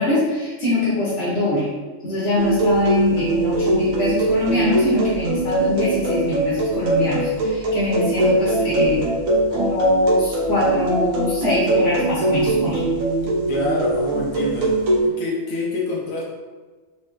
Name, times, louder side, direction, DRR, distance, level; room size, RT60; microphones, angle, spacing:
voice 1, 0.0-1.7 2.0-9.1 9.5-12.8, left 1 dB, 60° left, -8 dB, 1.3 m, -22 dB
sound 1, 2.4-15.0, right 2 dB, 85° right, 1.1 m, -21 dB
voice 2, 13.5-16.2, left 1 dB, 90° left, -3 dB, 1.3 m, -26 dB
4.2 x 2.9 x 3.2 m, 1.4 s
omnidirectional pair, 1.4 m